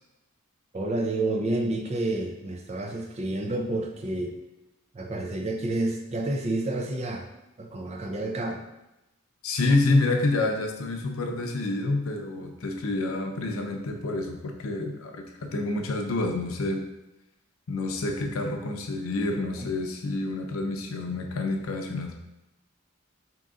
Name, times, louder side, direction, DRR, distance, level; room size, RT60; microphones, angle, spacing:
voice 1, 0.7-4.3 4.9-7.3 7.6-8.6 19.6-19.7, right 2 dB, 30° right, 3 dB, 0.5 m, -29 dB
voice 2, 9.4-16.8 17.7-22.1, left 2 dB, 85° left, 3 dB, 0.6 m, -28 dB
3.8 x 2.9 x 3.7 m, 0.91 s
head